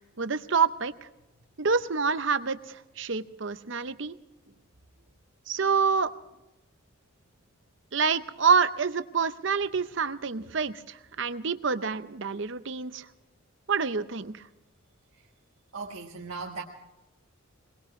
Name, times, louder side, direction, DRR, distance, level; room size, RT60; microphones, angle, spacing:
voice 1, 0.2-0.9 1.6-4.2 5.5-6.1 7.9-13.1 13.7-14.4, right 5 dB, 60° right, 12 dB, 0.7 m, -27 dB
voice 2, 15.7-16.6, right 4 dB, 80° right, -2 dB, 1.5 m, -39 dB
22.5 x 20.5 x 3.2 m, 0.98 s
head